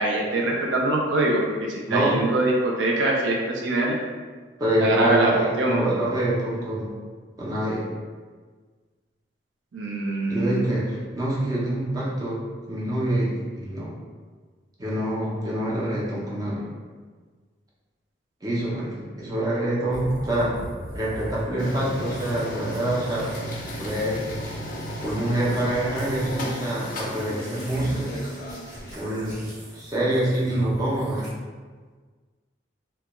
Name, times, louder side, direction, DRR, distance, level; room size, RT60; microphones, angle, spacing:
voice 1, 0.0-4.0 4.8-5.8 9.7-10.7, right 2 dB, 75° right, -1 dB, 0.4 m, -23 dB
voice 2, 4.6-6.9 7.4-7.8 10.3-13.9 14.8-16.7 18.4-20.5 20.9-23.3 23.8-24.2 25.0-28.1 28.9-29.3 29.7-31.3, right 1 dB, 20° right, -6 dB, 0.5 m, -26 dB
sound 1, 19.9-21.6 22.1-22.5 22.7-23.5 23.9-25.6 25.9-31.3, equal, 55° right, 0.8 m, -41 dB
sound 2, 21.6-29.2, equal, 45° left, 0.4 m, -34 dB
2.2 x 2.2 x 2.9 m, 1.5 s
head